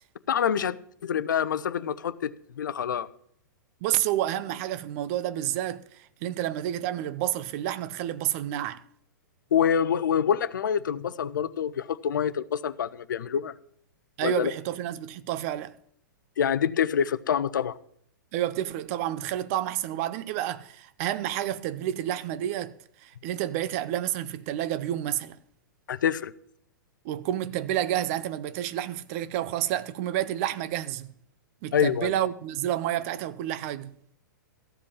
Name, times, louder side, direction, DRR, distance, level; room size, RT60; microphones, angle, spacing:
voice 1, 0.3-0.8 1.0-3.1 9.5-13.5 14.2-14.5 16.4-17.8 25.9-26.3 31.7-32.1, left 8 dB, 70° left, 0.6 m, -26 dB
voice 2, 3.8-8.8 14.2-15.7 18.3-22.7 23.0-25.4 27.0-31.1 31.6-33.9, right 12 dB, 45° right, 0.6 m, -30 dB
14.0 x 5.2 x 8.5 m
hypercardioid pair, 110°, 11 cm